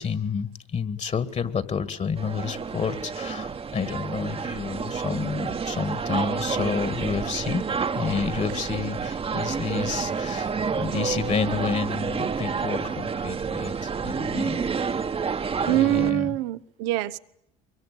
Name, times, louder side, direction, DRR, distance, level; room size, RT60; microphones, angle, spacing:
voice 1, 0.0-14.6 15.6-16.3, left 6 dB, 35° left, 1.9 m, -30 dB
sound 1, 2.2-16.1, right 5 dB, 30° right, 1.2 m, -29 dB
voice 2, 10.9-11.2 15.7-17.2, right 16 dB, 75° right, 1.0 m, -25 dB
24.0 x 23.0 x 8.4 m
hypercardioid pair, 70°, 19 cm